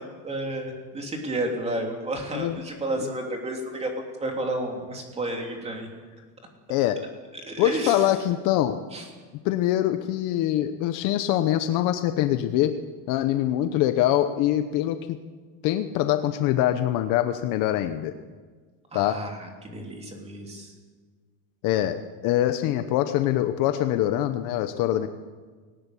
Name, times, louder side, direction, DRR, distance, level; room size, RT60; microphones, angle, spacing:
voice 1, 0.0-5.9 7.3-8.1 8.9-9.1 18.9-20.7, right 1 dB, 15° right, 2 dB, 3.2 m, -31 dB
voice 2, 7.6-8.8 9.4-12.7 13.1-15.0 15.6-18.1 18.9-19.2 21.6-25.1, left 13 dB, 45° left, 9 dB, 0.9 m, -24 dB
19.0 x 18.5 x 8.4 m, 1.5 s
cardioid pair, 170°, 44 cm